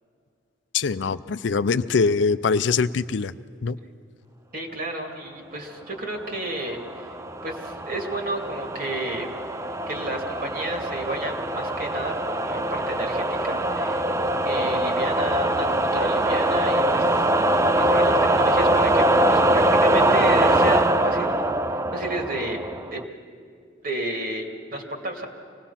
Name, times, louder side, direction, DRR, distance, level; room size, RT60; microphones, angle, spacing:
voice 1, 0.7-3.3 3.6-3.8, left 5 dB, 65° left, 14 dB, 0.5 m, -23 dB
voice 2, 4.5-7.1 7.4-9.3 9.9-14.1 14.4-21.5 21.9-22.6 22.9-23.0 23.8-25.3, right 1 dB, 50° right, 2 dB, 2.5 m, -32 dB
sound 1, 6.6-23.0, right 1 dB, 15° right, 0.4 m, -23 dB
25.0 x 18.5 x 5.8 m, 2.4 s
head